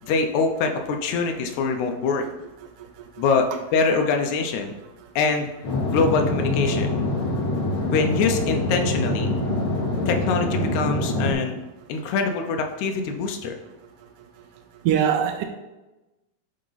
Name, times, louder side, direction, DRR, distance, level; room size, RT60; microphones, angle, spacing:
voice 1, 0.0-2.2 3.2-3.5 3.7-4.8 5.1-5.5 5.9-7.0 7.9-9.3 10.1-11.6 11.9-13.6, left 4 dB, 75° left, 4 dB, 1.8 m, -24 dB
sound 1, 5.6-11.3, left 2 dB, 50° left, 2.1 m, -25 dB
voice 2, 14.8-15.4, right 8 dB, 80° right, 4 dB, 2.0 m, -24 dB
10.5 x 3.8 x 3.9 m, 1.0 s
omnidirectional pair, 4.1 m